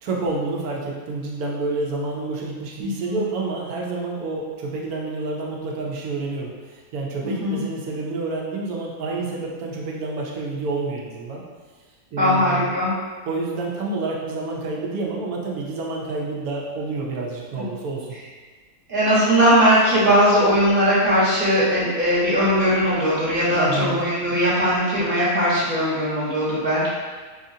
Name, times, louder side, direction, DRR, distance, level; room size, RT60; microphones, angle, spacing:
voice 1, 0.0-11.4 12.1-12.7 13.3-18.2 23.5-24.0, right 3 dB, 90° right, -2 dB, 1.2 m, -29 dB
voice 2, 2.8-3.2 7.2-7.6 12.2-12.9 18.9-26.9, equal, 40° right, -8 dB, 1.3 m, -19 dB
4.8 x 2.5 x 2.7 m, 1.4 s
omnidirectional pair, 1.5 m